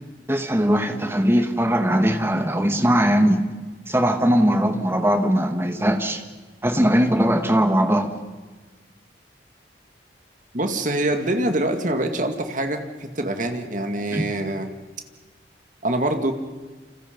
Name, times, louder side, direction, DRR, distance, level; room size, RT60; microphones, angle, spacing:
voice 1, 0.3-3.5 3.9-6.2 6.6-8.1 14.1-14.3, equal, 15° right, 6 dB, 1.8 m, -20 dB
voice 2, 10.5-14.7 15.8-16.3, right 1 dB, 45° right, 6 dB, 2.2 m, -25 dB
29.5 x 27.5 x 5.3 m, 1.3 s
head